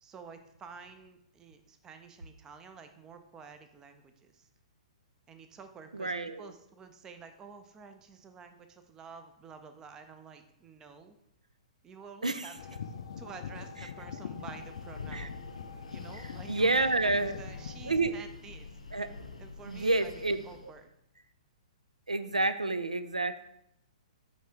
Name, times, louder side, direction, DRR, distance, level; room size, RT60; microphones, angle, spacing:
voice 1, 0.0-4.5 5.3-11.2 11.8-15.5 15.9-18.7 19.4-20.9, right 5 dB, 15° right, 8 dB, 0.5 m, -50 dB
voice 2, 5.9-6.5 12.2-12.5 15.1-15.3 16.5-17.4 17.9-18.2 18.9-19.1 19.7-20.4 22.1-23.4, right 2 dB, 80° right, 12 dB, 0.4 m, -29 dB
sound 1, 12.6-18.1, left 6 dB, 55° left, 0.5 m, -43 dB
Breathing, 14.3-20.8, left 3 dB, 75° left, 0.9 m, -48 dB
9.1 x 3.2 x 3.6 m, 0.77 s
figure-of-eight pair, 115°, 4 cm